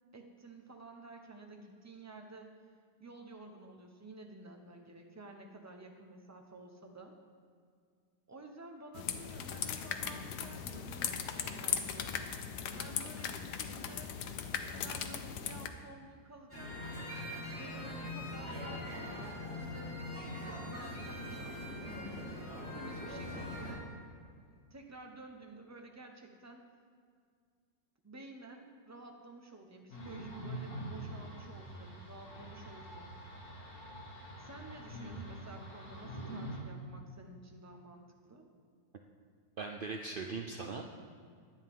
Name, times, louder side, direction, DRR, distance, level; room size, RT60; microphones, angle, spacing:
voice 1, 0.1-2.5 3.0-7.1 8.3-12.2 12.7-14.1 14.7-17.1 17.6-21.9 22.7-23.9 24.7-26.7 28.0-33.1 34.4-38.5, right 2 dB, 15° right, 2 dB, 0.8 m, -52 dB
sound 1, 8.9-15.7, left 8 dB, 85° left, 1.3 m, -38 dB
sound 2, 16.5-23.7, left 1 dB, 10° left, 3.7 m, -42 dB
sound 3, 29.9-36.6, right 1 dB, 65° left, 2.4 m, -45 dB
voice 2, 39.6-40.9, right 4 dB, 65° right, 3 dB, 0.5 m, -39 dB
15.5 x 10.5 x 3.7 m, 2.1 s
omnidirectional pair, 1.7 m